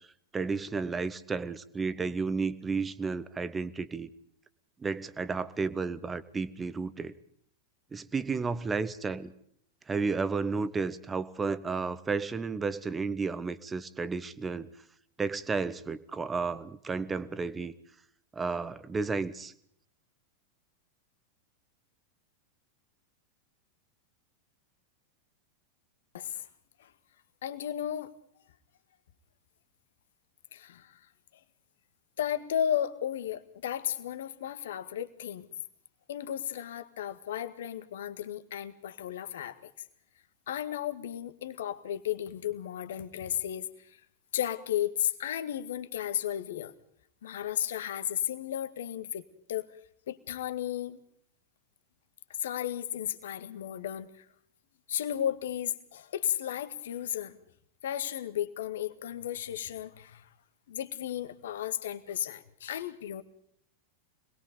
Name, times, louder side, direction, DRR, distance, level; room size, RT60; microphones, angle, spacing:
voice 1, 0.3-4.1 4.8-7.1 7.9-9.3 9.9-14.7 15.2-17.7 18.3-19.5, right 4 dB, 15° right, 14 dB, 1.4 m, -32 dB
voice 2, 26.1-26.5 26.8-26.9 27.4-28.1 30.5-30.9 32.2-35.5 36.1-39.7 40.5-44.0 44.3-46.7 47.2-49.7 50.1-51.0 52.4-54.2 54.9-57.4 57.8-60.3 60.7-63.2, left 10 dB, 60° left, 10 dB, 1.9 m, -34 dB
26.5 x 21.0 x 5.4 m, 0.67 s
figure-of-eight pair, 90°, 0 cm